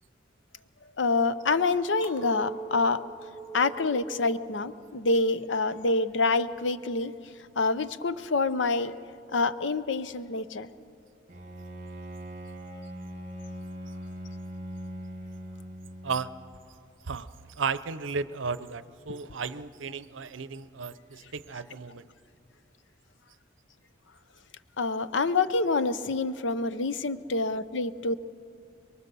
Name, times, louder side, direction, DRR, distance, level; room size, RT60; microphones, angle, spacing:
voice 1, 1.0-3.0 3.5-7.1 7.6-8.9 9.3-10.7 19.1-19.2 24.8-28.2, left 3 dB, 75° left, 13 dB, 0.7 m, -27 dB
Chink clink, 2.0-7.4, right 6 dB, 10° right, 2.3 m, -44 dB
Bowed string instrument, 11.3-16.6, equal, 45° right, 1.7 m, -41 dB
voice 2, 17.1-22.1, right 5 dB, 85° right, 15 dB, 0.7 m, -34 dB
23.5 x 22.5 x 6.9 m, 2.6 s
head